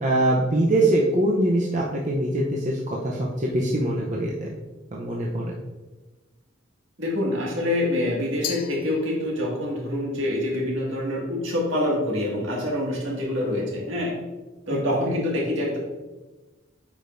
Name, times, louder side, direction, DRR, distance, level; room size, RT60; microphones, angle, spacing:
voice 1, 0.0-4.5 4.9-5.5 14.7-14.8, right 1 dB, 35° right, -3 dB, 0.7 m, -23 dB
voice 2, 7.0-14.1 14.7-15.8, left 1 dB, 70° right, -3 dB, 2.0 m, -26 dB
Glass, 8.4-9.7, left 10 dB, 40° left, 0.4 m, -36 dB
8.7 x 5.1 x 2.6 m, 1.2 s
head